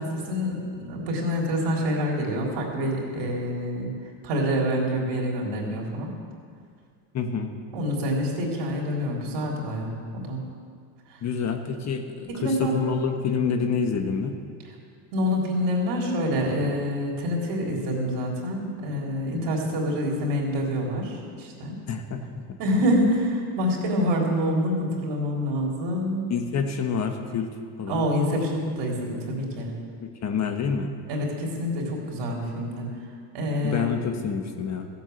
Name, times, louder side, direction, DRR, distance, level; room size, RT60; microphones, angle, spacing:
voice 1, 0.0-3.9 4.2-6.1 7.7-10.4 11.1-11.2 12.3-12.8 13.5-13.6 15.1-21.8 22.6-26.3 27.9-29.8 31.1-32.9 33.3-33.9, equal, 65° right, -1 dB, 3.8 m, -26 dB
voice 2, 7.1-7.5 11.2-14.3 21.9-22.6 26.3-27.5 27.8-28.0 30.2-30.9 33.6-34.9, left 6 dB, 35° left, 5 dB, 1.3 m, -27 dB
14.5 x 8.4 x 8.0 m, 2.1 s
supercardioid pair, 110°, 45 cm